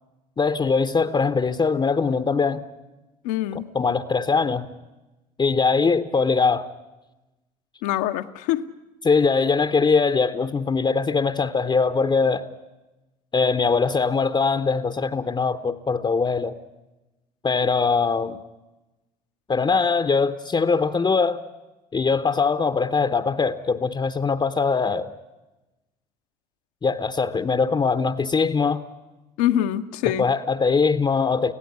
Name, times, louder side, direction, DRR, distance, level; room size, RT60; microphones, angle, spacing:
voice 1, 0.4-2.6 3.7-4.7 5.4-6.7 9.0-12.4 13.3-16.6 17.4-18.4 19.5-21.4 21.9-25.1 26.8-28.8 30.2-31.5, left 4 dB, 20° left, 1.0 m, -21 dB
voice 2, 3.2-3.7 7.8-8.7 29.4-30.3, left 12 dB, 65° left, 1.1 m, -24 dB
25.5 x 16.5 x 9.9 m
figure-of-eight pair, 65°, 21 cm